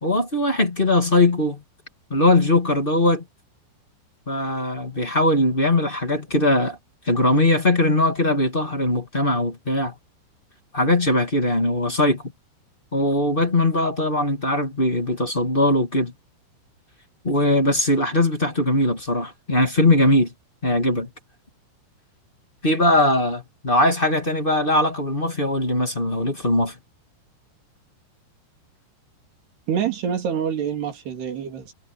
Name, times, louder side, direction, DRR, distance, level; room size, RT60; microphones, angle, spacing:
voice 1, 0.0-1.6 2.1-3.2 4.3-6.8 7.0-9.9 10.7-12.2 12.9-16.1 17.2-20.3 20.6-21.1 22.6-26.7, left 1 dB, 20° left, 1.5 m, -20 dB
voice 2, 29.7-31.7, right 8 dB, 60° right, 5.0 m, -26 dB
omnidirectional pair, 5.4 m